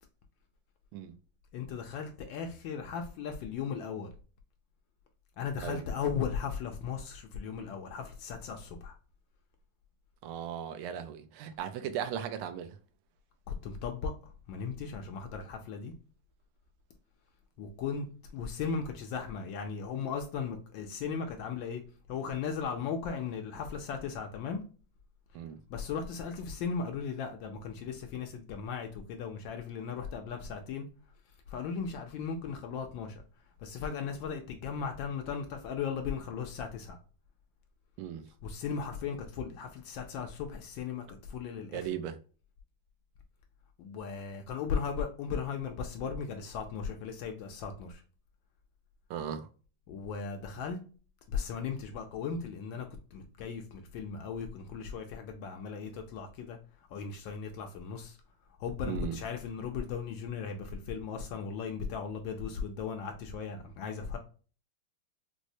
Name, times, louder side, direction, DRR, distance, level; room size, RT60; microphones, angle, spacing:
voice 1, 1.5-4.1 5.4-9.0 13.5-15.9 17.6-18.1 18.3-21.8 22.1-24.6 25.7-30.9 31.5-33.2 33.6-37.0 38.4-41.9 43.8-48.0 49.9-50.8 51.3-56.6 56.9-58.2 58.6-64.2, left 6 dB, 75° left, 1.2 m, -37 dB
voice 2, 10.2-12.7 25.3-25.6 38.0-38.2 41.7-42.2 49.1-49.5 58.9-59.2, right 9 dB, 80° right, 1.4 m, -37 dB
4.6 x 2.0 x 2.6 m
omnidirectional pair, 2.4 m